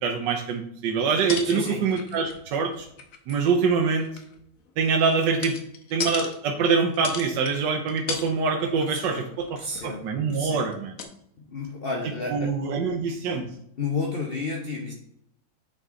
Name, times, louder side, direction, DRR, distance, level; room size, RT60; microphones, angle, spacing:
voice 1, 0.0-2.9 3.3-4.1 4.8-5.6 5.9-9.5 9.8-10.9 12.3-13.4, right 5 dB, 70° right, 3 dB, 1.2 m, -24 dB
sound 1, 1.2-2.5 2.7-3.5 3.9-6.4 6.9-7.6 7.9-8.3 8.6-8.8 9.2-10.0 10.7-10.8 11.0-11.1, left 5 dB, 60° left, 1.0 m, -36 dB
voice 2, 1.4-1.8 9.0-9.3 9.6-10.1 10.3-10.7 11.5-12.6 13.8-14.9, left 3 dB, 85° left, 1 dB, 0.5 m, -31 dB
8.8 x 3.2 x 3.6 m, 0.71 s
omnidirectional pair, 2.1 m